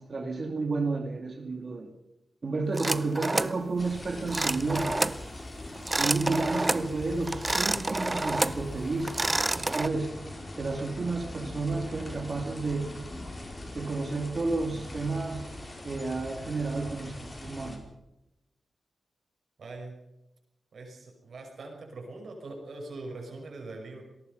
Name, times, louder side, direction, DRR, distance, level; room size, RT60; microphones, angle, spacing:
voice 1, 0.0-1.9 2.4-5.2 6.0-10.1 10.6-12.9 13.7-15.5 15.8-17.8, right 3 dB, 40° right, 5 dB, 2.8 m, -31 dB
sound 1, 2.8-3.6 4.3-5.2 5.8-6.9 7.3-8.6 9.0-9.9, right 2 dB, 20° right, 0.7 m, -28 dB
sound 2, 3.8-17.8, left 1 dB, 25° left, 5.0 m, -42 dB
voice 2, 19.6-19.9 20.7-24.0, right 2 dB, 65° right, 1 dB, 6.0 m, -42 dB
27.0 x 18.5 x 5.5 m, 0.91 s
wide cardioid pair, 125°, 0 cm